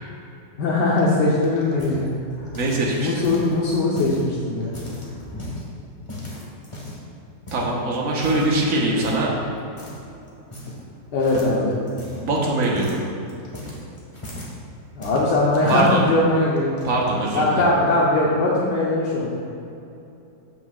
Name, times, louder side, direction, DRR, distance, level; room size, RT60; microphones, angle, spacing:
voice 1, 0.6-2.1 2.4-2.5 3.0-4.7 11.1-11.8 14.9-16.7 17.3-19.4, left 2 dB, 75° left, -5 dB, 1.5 m, -20 dB
sound 1, 1.0-2.9 3.2-4.2 4.6-5.7 6.1-7.1 7.5-7.7 8.2-8.5 9.0-9.3 9.8-10.0 10.3-10.9 11.2-14.6 15.0-15.9 16.6-17.1, left 2 dB, 20° left, 1.2 m, -36 dB
voice 2, 2.6-3.2 7.5-9.3 12.2-13.0 15.7-16.0 16.8-17.6, right 2 dB, 50° right, -2 dB, 1.5 m, -22 dB
13.5 x 6.2 x 2.4 m, 2.7 s
omnidirectional pair, 1.9 m